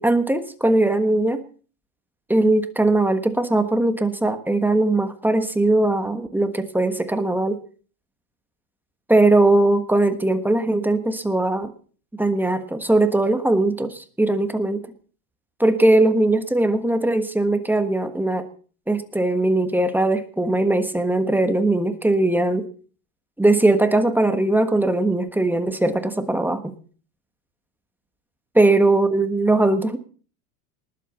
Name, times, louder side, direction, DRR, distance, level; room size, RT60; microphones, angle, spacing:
voice 1, 0.0-1.4 2.3-7.6 9.1-11.7 12.2-14.8 15.6-18.5 18.9-22.7 23.4-26.7 28.5-30.0, right 2 dB, 5° right, 8 dB, 1.3 m, -20 dB
19.5 x 8.4 x 7.0 m, 0.42 s
supercardioid pair, 145°, 46 cm